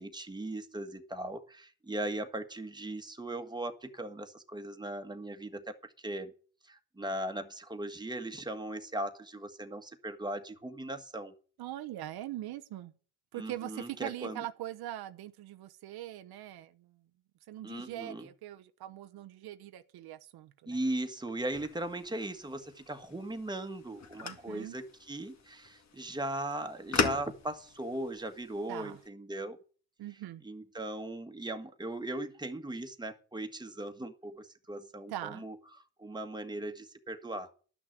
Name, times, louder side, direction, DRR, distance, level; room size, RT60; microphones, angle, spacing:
voice 1, 0.0-6.3 6.6-11.3 13.3-14.5 17.6-18.3 20.7-29.6 30.4-35.6 36.0-37.5, right 1 dB, 10° right, 1.6 m, -38 dB
voice 2, 11.6-12.9 13.3-17.0 17.5-20.8 24.2-24.8 28.7-29.0 30.0-30.4 35.1-35.4, right 13 dB, 80° right, 0.9 m, -42 dB
sound 1, 21.5-29.1, left 5 dB, 45° left, 2.2 m, -39 dB
12.0 x 6.2 x 8.9 m
cardioid pair, 85°, 37 cm